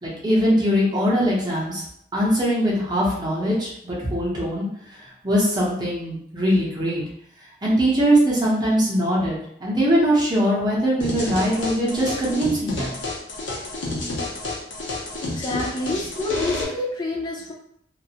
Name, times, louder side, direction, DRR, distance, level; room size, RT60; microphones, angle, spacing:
voice 1, 0.0-1.8 2.1-4.7 5.2-7.0 7.6-12.9, equal, 20° right, -6 dB, 0.7 m, -21 dB
sound 1, 11.0-16.6, left 2 dB, 80° left, 0.6 m, -30 dB
voice 2, 15.2-17.5, left 2 dB, 20° left, -2 dB, 0.4 m, -27 dB
2.3 x 2.0 x 2.7 m, 0.72 s
head